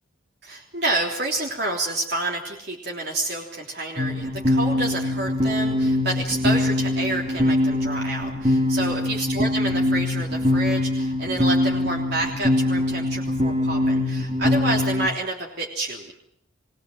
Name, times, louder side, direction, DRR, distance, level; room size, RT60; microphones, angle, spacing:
voice 1, 0.4-16.1, right 2 dB, 55° right, -1 dB, 3.3 m, -29 dB
sound 1, 4.0-15.1, left 1 dB, 30° right, 2.4 m, -23 dB
22.5 x 19.0 x 7.9 m, 0.72 s
head